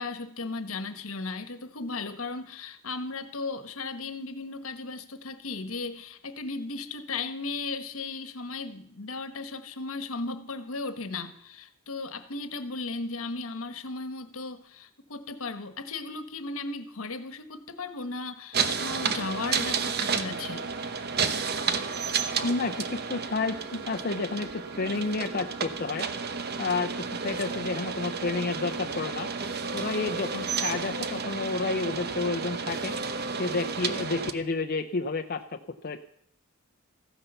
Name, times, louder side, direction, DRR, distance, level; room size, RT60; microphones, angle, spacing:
voice 1, 0.0-20.7, left 3 dB, 75° left, 10 dB, 1.3 m, -36 dB
sound 1, 18.5-34.3, right 5 dB, 50° right, 1.0 m, -31 dB
voice 2, 22.4-26.1 26.6-26.9 27.2-29.3 29.7-32.9 33.3-36.0, left 3 dB, 45° left, 5 dB, 0.7 m, -30 dB
15.0 x 10.0 x 6.8 m, 0.72 s
head